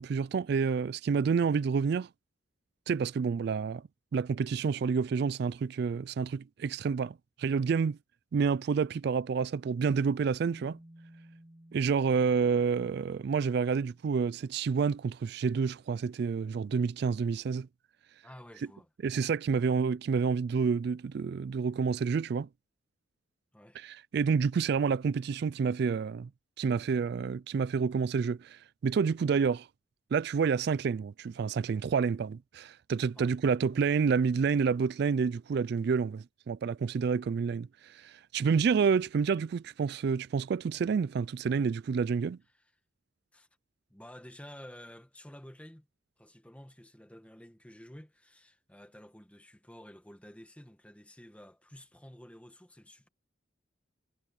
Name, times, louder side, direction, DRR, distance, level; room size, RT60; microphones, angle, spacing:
voice 1, 0.0-2.1 2.9-3.8 4.1-8.0 8.3-10.8 11.7-17.7 19.0-22.5 23.8-26.3 26.6-29.7 30.1-42.4, right 5 dB, 55° right, 0.3 m, -29 dB
sound 1, 10.4-14.7, right 1 dB, 25° right, 2.9 m, -57 dB
voice 2, 18.2-18.9 23.5-23.8 33.1-33.4 37.9-38.1 42.5-42.7 43.3-43.5 43.9-45.9 46.2-53.1, equal, 5° left, 1.3 m, -51 dB
head